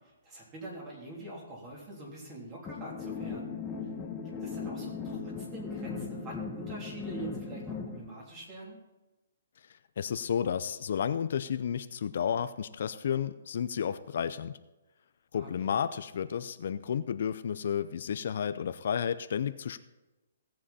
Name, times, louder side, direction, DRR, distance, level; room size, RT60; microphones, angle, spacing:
voice 1, 0.0-3.6 4.4-8.8 15.3-15.7, right 2 dB, 20° right, -3 dB, 3.2 m, -44 dB
sound 1, 2.7-8.0, left 5 dB, 15° left, 1.2 m, -38 dB
voice 2, 10.0-14.6 15.3-19.8, left 8 dB, 60° left, 12 dB, 0.5 m, -32 dB
17.0 x 7.7 x 4.2 m, 1.1 s
hypercardioid pair, 160°, 0 cm